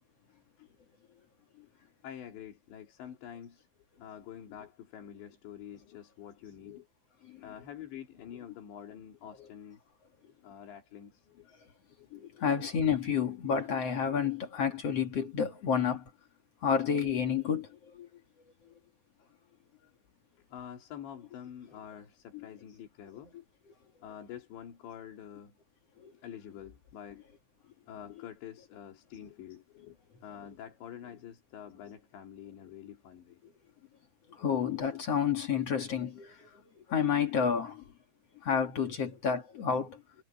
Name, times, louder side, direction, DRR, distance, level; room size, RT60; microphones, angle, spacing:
voice 1, 2.0-3.7 4.0-6.9 7.3-9.8 10.4-11.5 11.9-12.1 19.2-19.3 20.5-23.3 24.0-25.6 26.2-27.2 27.9-33.4 34.3-34.5, left 9 dB, 85° left, 5.1 m, -47 dB
voice 2, 12.1-16.0 16.6-17.7 17.9-18.1 26.0-26.1 34.4-36.5 36.9-37.8 38.4-40.0, left 7 dB, 45° left, 2.3 m, -30 dB
omnidirectional pair, 5.0 m